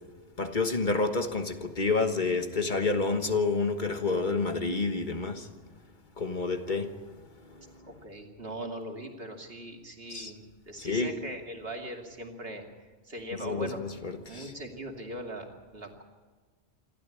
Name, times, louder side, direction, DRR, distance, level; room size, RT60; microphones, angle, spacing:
voice 1, 0.4-5.5 6.2-6.9 7.5-7.7 10.1-10.3 10.8-11.1 13.4-14.5, left 3 dB, 45° left, 1.5 m, -29 dB
voice 2, 7.9-13.8 14.1-16.0, right 1 dB, 65° right, 2.8 m, -40 dB
27.0 x 12.5 x 8.5 m
omnidirectional pair, 1.1 m